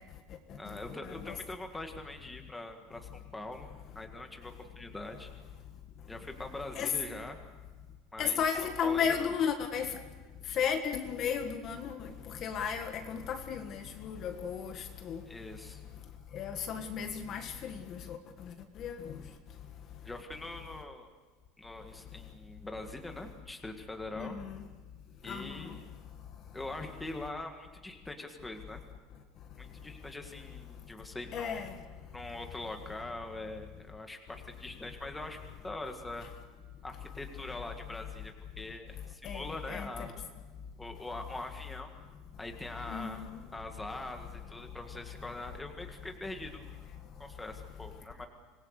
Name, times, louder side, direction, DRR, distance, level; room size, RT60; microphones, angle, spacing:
voice 1, 0.6-3.7 3.9-5.3 6.1-7.4 8.1-9.3 15.3-15.8 20.0-21.1 21.6-24.4 25.2-25.8 26.5-28.8 29.6-31.6 32.1-35.4 35.6-36.3 36.8-40.2 40.8-42.0 42.4-46.6 47.2-48.3, left 2 dB, 5° left, 1.8 m, -43 dB
voice 2, 8.2-9.9 10.6-12.0 12.4-14.7 15.0-15.2 16.3-18.2 18.8-19.0 24.2-24.6 25.3-25.5 31.3-31.7 39.2-39.4 39.7-39.9 42.9-43.3, left 7 dB, 30° left, 1.6 m, -33 dB
25.5 x 20.5 x 6.7 m
cardioid pair, 175°, 0 cm